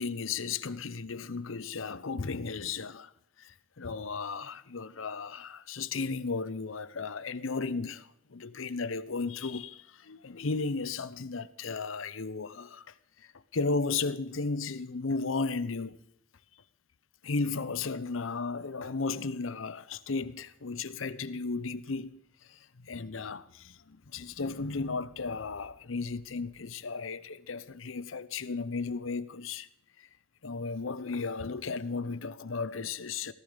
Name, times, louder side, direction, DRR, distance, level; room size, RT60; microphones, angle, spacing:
voice 1, 0.0-3.1 3.4-12.8 13.5-16.0 17.2-22.2 22.5-29.7 30.4-33.3, left 4 dB, 85° left, 0.8 m, -34 dB
17.5 x 14.0 x 5.1 m
head